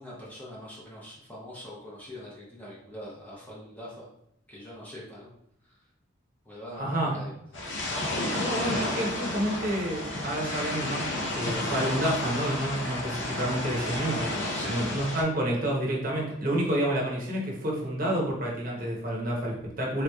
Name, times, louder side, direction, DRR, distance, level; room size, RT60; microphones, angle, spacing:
voice 1, 0.0-4.1 4.5-5.3 5.6-5.9 6.4-7.3 14.5-14.9, equal, 10° left, -6 dB, 0.7 m, -43 dB
voice 2, 6.8-7.2 8.4-20.0, right 1 dB, 45° right, -2 dB, 0.8 m, -29 dB
sound 1, 7.5-15.2, left 1 dB, 60° left, 0.6 m, -31 dB
3.6 x 2.9 x 2.3 m, 0.76 s
head